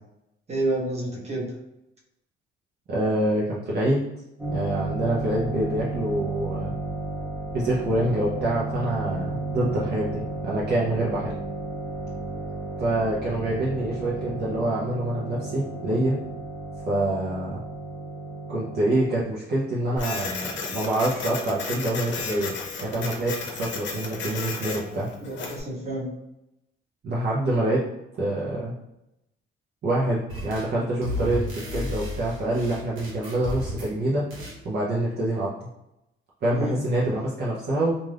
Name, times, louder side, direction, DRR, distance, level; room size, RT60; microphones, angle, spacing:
voice 1, 0.5-1.5 25.2-26.1 36.5-36.9, right 1 dB, 35° right, -3 dB, 1.1 m, -29 dB
voice 2, 2.9-4.0 4.5-6.7 7.5-11.3 12.8-16.2 16.9-17.6 18.5-22.5 22.8-25.1 27.0-27.8 28.2-28.7 29.8-34.3 34.6-35.5 36.4-38.1, right 1 dB, 55° right, -6 dB, 0.7 m, -26 dB
sound 1, 4.4-19.2, right 2 dB, 10° right, 0.7 m, -33 dB
Printer, 20.0-25.6, left 4 dB, 65° left, 0.7 m, -34 dB
sound 2, 30.3-30.7 31.0-34.0 34.3-34.6, left 1 dB, 85° right, 1.1 m, -33 dB
2.5 x 2.3 x 3.3 m, 0.88 s
cardioid pair, 90°, 20 cm